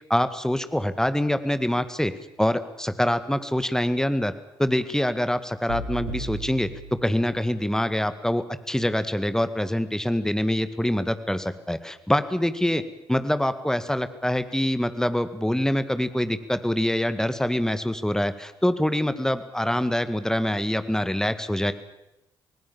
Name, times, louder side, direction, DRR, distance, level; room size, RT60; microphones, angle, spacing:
voice 1, 0.1-2.1 2.4-4.3 4.6-12.8 13.1-21.7, left 1 dB, 5° left, 12 dB, 1.9 m, -25 dB
sound 1, 5.7-7.8, right 1 dB, 85° right, 4.4 m, -36 dB
26.0 x 18.5 x 7.3 m, 0.90 s
figure-of-eight pair, 40°, 12 cm